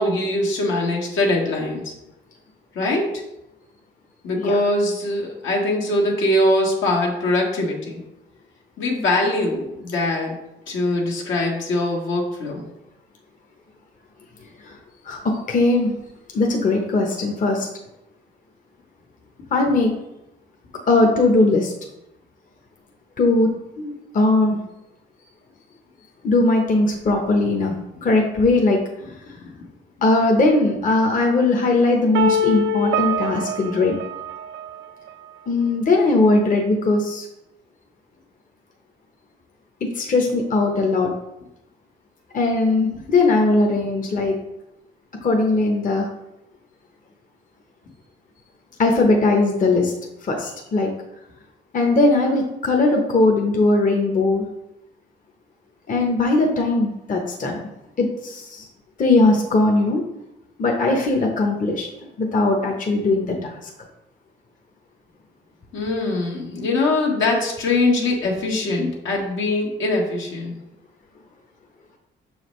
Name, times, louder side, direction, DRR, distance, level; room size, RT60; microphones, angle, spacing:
voice 1, 0.0-1.9 2.7-3.1 4.2-8.0 8.8-10.3 10.7-12.6 65.7-70.5, left 2 dB, 75° left, 0 dB, 1.5 m, -22 dB
voice 2, 15.5-15.9 16.3-17.7 19.5-19.9 20.9-21.7 23.2-23.5 23.8-24.6 26.2-27.7 28.0-28.8 30.0-34.0 35.5-37.3 39.9-41.1 42.3-44.4 45.2-46.1 48.8-49.9 50.3-50.9 51.7-54.4 55.9-57.6 58.0-58.6 59.0-60.0 60.6-61.9 62.2-63.5, left 2 dB, 40° left, 1 dB, 0.9 m, -19 dB
sound 1, 32.1-35.1, equal, 80° right, 0.6 m, -24 dB
6.2 x 4.9 x 3.2 m, 0.88 s
cardioid pair, 90°, 20 cm